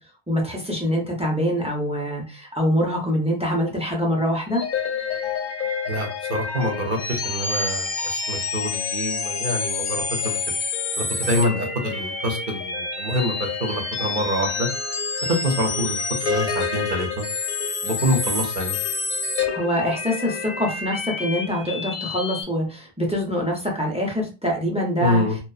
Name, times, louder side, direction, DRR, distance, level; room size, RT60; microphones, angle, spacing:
voice 1, 0.3-4.6 19.5-25.2, equal, 10° right, -1 dB, 0.4 m, -24 dB
sound 1, 4.5-22.4, left 4 dB, 55° left, 0.6 m, -28 dB
voice 2, 5.9-10.4 11.0-14.7 15.3-16.0 16.2-17.3 17.8-18.8 25.0-25.4, equal, 55° right, 3 dB, 0.7 m, -26 dB
2.6 x 2.1 x 2.3 m, 0.31 s
omnidirectional pair, 1.1 m